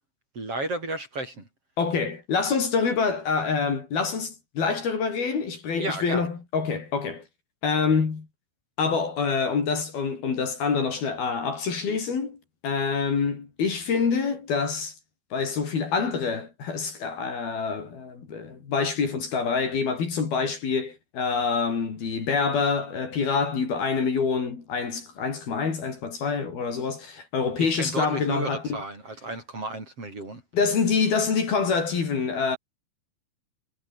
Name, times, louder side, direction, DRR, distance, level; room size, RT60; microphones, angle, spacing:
voice 1, 0.4-1.5 5.8-6.3 27.6-30.4, right 2 dB, 30° right, 7.2 m, -33 dB
voice 2, 1.8-7.2 7.6-8.3 8.8-12.4 12.6-14.9 15.3-28.8 30.5-32.6, left 5 dB, 55° left, 6.2 m, -26 dB
omnidirectional pair, 5.3 m